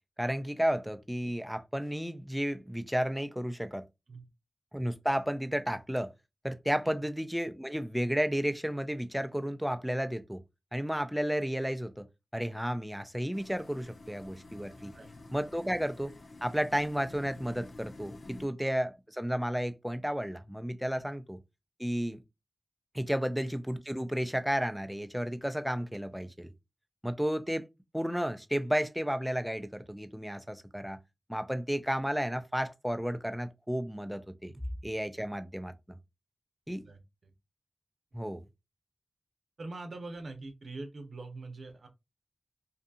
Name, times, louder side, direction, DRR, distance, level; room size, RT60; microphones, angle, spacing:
voice 1, 0.2-3.8 4.7-6.1 6.4-10.4 10.7-12.1 12.3-14.9 15.3-16.1 16.4-21.4 21.8-22.2 22.9-26.5 27.0-27.7 27.9-31.0 31.3-34.5 34.8-36.0 36.7-36.8 38.1-38.4, equal, 5° right, 0.4 m, -32 dB
sound 1, 13.3-18.5, left 2 dB, 70° left, 0.4 m, -50 dB
voice 2, 14.8-15.1 18.3-18.4 20.9-21.0 23.1-23.2 36.7-37.0 38.1-38.2 39.6-41.9, right 2 dB, 80° right, 0.6 m, -44 dB
2.6 x 2.3 x 2.6 m
wide cardioid pair, 55°, 0 cm